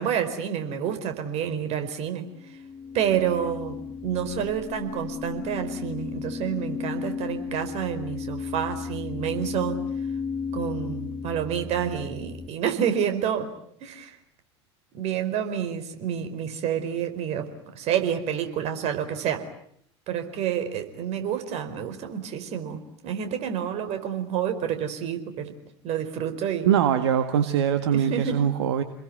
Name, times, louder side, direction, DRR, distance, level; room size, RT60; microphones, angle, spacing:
voice 1, 0.0-2.3 2.9-9.8 10.5-13.5 13.8-14.2 14.9-17.5 17.7-19.4 20.1-25.5 25.8-26.7 27.9-28.4, right 8 dB, 45° right, 8 dB, 4.7 m, -29 dB
sound 1, 2.4-12.5, left 5 dB, 15° left, 2.0 m, -34 dB
voice 2, 26.6-28.8, right 9 dB, 70° right, 8 dB, 1.8 m, -22 dB
29.0 x 21.5 x 9.4 m, 0.68 s
figure-of-eight pair, 80°, 15 cm